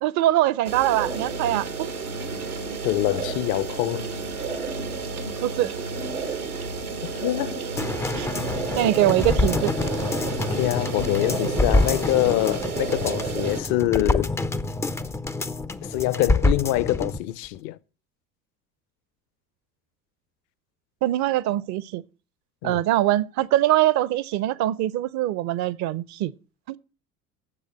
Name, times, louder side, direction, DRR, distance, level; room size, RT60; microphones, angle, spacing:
voice 1, 0.0-1.9 5.4-5.7 8.2-8.3 8.8-9.7 21.0-22.0 22.6-26.3 26.7-26.8, right 14 dB, 40° right, 0.7 m, -23 dB
sound 1, 0.6-13.6, right 4 dB, 85° right, 1.5 m, -31 dB
voice 2, 2.8-4.1 7.2-7.6 10.4-14.3 15.8-17.8 22.6-22.8, left 16 dB, 45° left, 0.7 m, -25 dB
sound 2, 7.8-17.2 17.5-17.6, left 2 dB, 5° left, 0.5 m, -26 dB
9.9 x 7.7 x 7.6 m
figure-of-eight pair, 65°, 43 cm